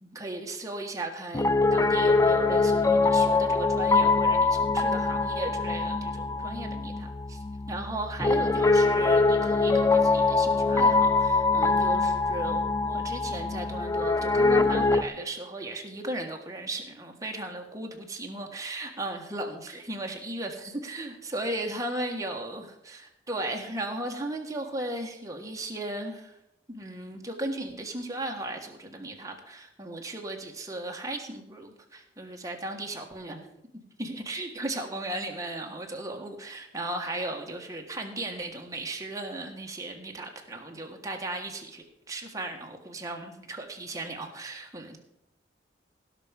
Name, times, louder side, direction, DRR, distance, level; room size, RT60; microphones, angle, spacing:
voice 1, 0.0-26.4 26.7-33.4 33.7-45.0, right 1 dB, 20° right, 2 dB, 1.6 m, -36 dB
Piano, 1.3-15.1, left 3 dB, 20° left, 0.5 m, -23 dB
17.0 x 6.1 x 5.2 m, 0.82 s
head